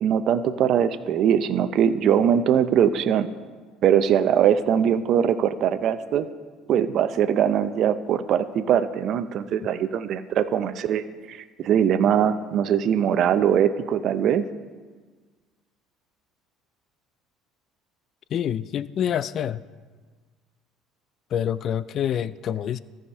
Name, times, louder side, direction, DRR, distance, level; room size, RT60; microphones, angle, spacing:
voice 1, 0.0-3.3 3.8-6.3 6.7-14.4, right 9 dB, 60° right, 12 dB, 0.5 m, -21 dB
voice 2, 18.3-19.6 21.3-22.8, left 9 dB, 50° left, 18 dB, 0.3 m, -26 dB
14.0 x 5.0 x 5.6 m, 1.4 s
supercardioid pair, 95°, 0 cm